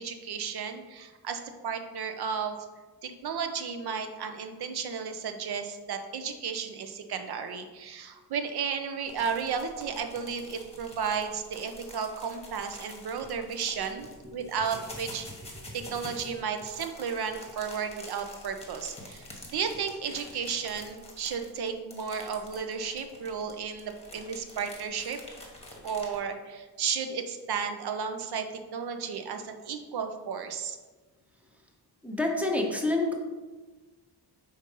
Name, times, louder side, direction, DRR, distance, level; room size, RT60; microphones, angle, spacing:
voice 1, 0.0-2.6 3.0-15.3 15.7-19.3 19.5-25.2 25.8-30.8, right 6 dB, 65° right, 6 dB, 0.7 m, -33 dB
sound 1, 9.1-26.2, left 1 dB, 15° left, 1.1 m, -47 dB
voice 2, 32.0-33.1, left 2 dB, 5° right, 1 dB, 0.7 m, -28 dB
5.1 x 3.9 x 5.4 m, 1.3 s
wide cardioid pair, 170°, 41 cm